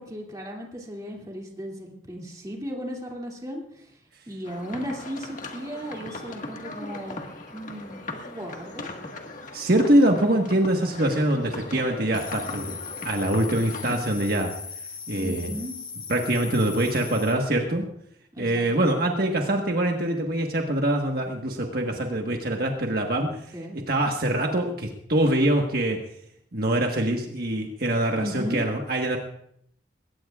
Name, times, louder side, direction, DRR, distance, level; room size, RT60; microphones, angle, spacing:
voice 1, 0.0-3.9 4.3-7.2 7.5-8.9 15.2-15.7 18.3-18.9 23.5-23.8 28.2-28.6, equal, 20° right, -1 dB, 2.6 m, -36 dB
sound 1, 4.4-14.0, left 2 dB, 45° left, 1.6 m, -39 dB
voice 2, 9.5-12.8 13.0-14.5 15.1-15.5 16.1-17.8 18.4-23.4 23.7-26.0 26.5-29.2, right 1 dB, 55° right, 1 dB, 1.4 m, -24 dB
sound 2, 12.1-17.4, left 5 dB, 25° left, 2.0 m, -38 dB
21.0 x 18.0 x 2.4 m, 0.71 s
head